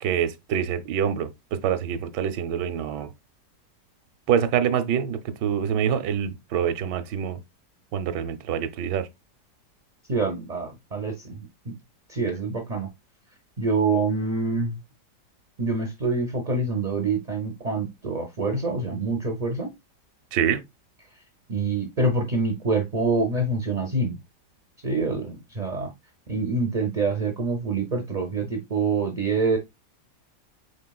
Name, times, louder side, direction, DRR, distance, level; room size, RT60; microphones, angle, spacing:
voice 1, 0.0-3.1 4.3-7.4 7.9-9.1 20.3-20.6, right 8 dB, 85° right, 1.3 m, -25 dB
voice 2, 10.1-11.7 12.1-12.9 13.6-14.8 15.6-19.7 21.5-24.2 24.8-25.9 26.3-29.6, right 3 dB, 55° right, 0.4 m, -26 dB
5.2 x 3.4 x 2.2 m
omnidirectional pair, 1.8 m